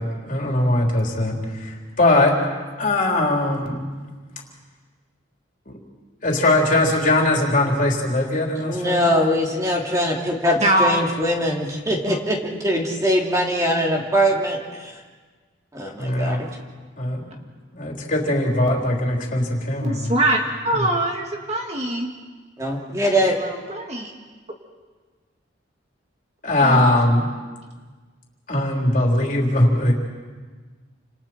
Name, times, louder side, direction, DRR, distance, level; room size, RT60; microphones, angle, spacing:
voice 1, 0.0-2.4 2.8-3.8 5.7-5.8 6.2-9.1 16.0-16.5 17.0-17.2 17.7-20.1 26.4-27.3 28.5-29.9, left 1 dB, 40° left, -1 dB, 3.7 m, -20 dB
voice 2, 8.6-14.9 15.7-16.4 22.6-23.3, equal, 15° right, -1 dB, 3.1 m, -22 dB
voice 3, 10.6-11.0 12.0-12.2 19.8-22.1 23.1-24.1 26.5-26.9, right 1 dB, 35° right, 1 dB, 2.2 m, -23 dB
29.5 x 27.5 x 4.5 m, 1.4 s
head